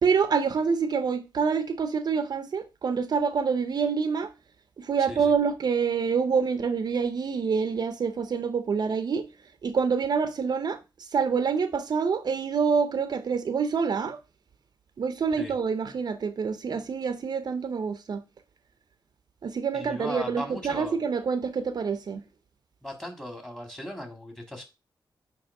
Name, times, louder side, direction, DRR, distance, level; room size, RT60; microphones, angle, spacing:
voice 1, 0.0-4.3 4.9-9.3 9.6-10.8 11.1-14.2 15.0-18.2 19.4-22.2, right 5 dB, 60° right, 0.6 m, -26 dB
voice 2, 5.0-5.3 15.4-15.6 19.7-21.0 22.8-24.6, equal, 5° left, 1.8 m, -37 dB
8.7 x 3.0 x 4.7 m
wide cardioid pair, 130°, 8 cm